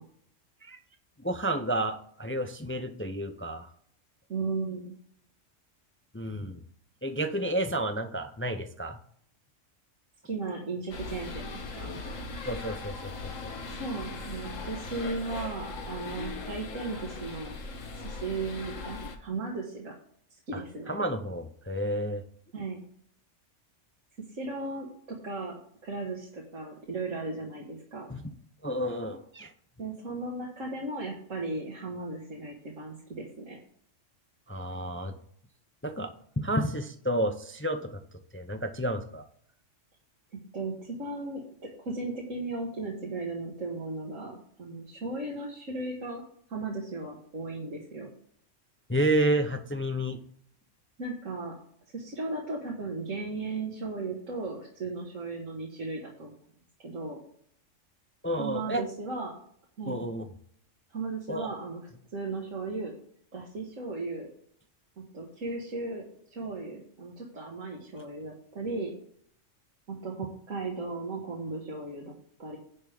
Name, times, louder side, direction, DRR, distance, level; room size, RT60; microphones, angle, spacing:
voice 1, 1.2-3.7 6.1-6.6 7.0-9.0 12.4-13.5 20.5-22.2 28.1-28.3 28.6-29.5 34.5-35.2 35.8-38.0 38.3-39.2 48.9-50.2 58.2-58.8 59.9-60.3 61.3-61.5, right 1 dB, 15° left, 7 dB, 0.4 m, -31 dB
voice 2, 4.3-4.9 10.2-12.0 13.7-17.6 18.0-19.9 20.5-20.9 22.5-22.8 24.3-28.1 29.8-33.6 40.3-46.2 46.5-48.1 51.0-51.5 51.9-56.4 56.8-57.2 58.4-59.3 59.8-60.0 60.9-61.8 62.1-62.9 63.3-64.3 65.0-66.0 66.3-68.9 69.9-72.6, right 3 dB, 90° right, -2 dB, 2.0 m, -36 dB
sound 1, 10.9-19.2, left 3 dB, 90° left, 1.6 m, -39 dB
10.5 x 3.6 x 7.1 m, 0.63 s
omnidirectional pair, 1.3 m